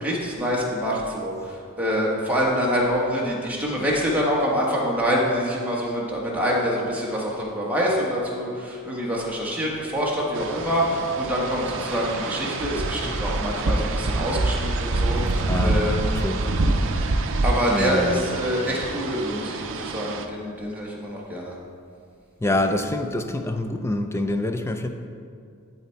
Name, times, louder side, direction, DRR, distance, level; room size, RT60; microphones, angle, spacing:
voice 1, 0.0-16.3 17.4-21.5, equal, 5° right, -5 dB, 1.4 m, -26 dB
sound 1, 10.3-20.3, right 2 dB, 60° right, 0.6 m, -26 dB
voice 2, 15.5-15.8 16.0-16.5 17.7-18.2 22.4-24.9, left 1 dB, 10° left, 6 dB, 0.4 m, -26 dB
12.0 x 4.2 x 4.5 m, 2.3 s
head